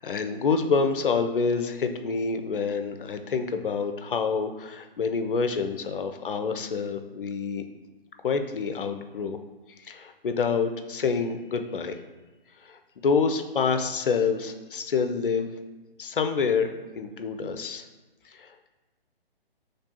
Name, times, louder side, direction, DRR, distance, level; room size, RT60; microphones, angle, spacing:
voice 1, 0.0-7.6 8.2-9.4 9.8-12.0 12.6-15.5 16.0-17.8 18.3-18.5, left 5 dB, 60° left, 7 dB, 0.4 m, -27 dB
4.1 x 3.2 x 2.7 m, 1.2 s
figure-of-eight pair, 135°, 30 cm